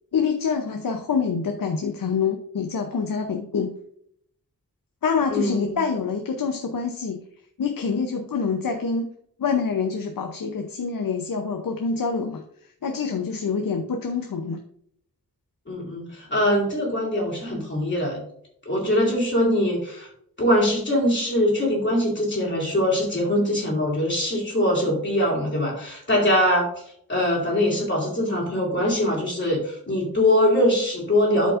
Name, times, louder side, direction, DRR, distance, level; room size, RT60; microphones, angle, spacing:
voice 1, 0.1-3.7 5.0-7.2 7.6-9.1 9.4-12.4 12.8-14.6, left 5 dB, 65° left, 5 dB, 0.7 m, -26 dB
voice 2, 5.3-5.8 15.7-18.2 18.6-20.1 20.4-26.7 27.1-31.5, left 1 dB, 30° left, -3 dB, 2.9 m, -22 dB
12.0 x 5.3 x 2.5 m, 0.67 s
wide cardioid pair, 130°, 36 cm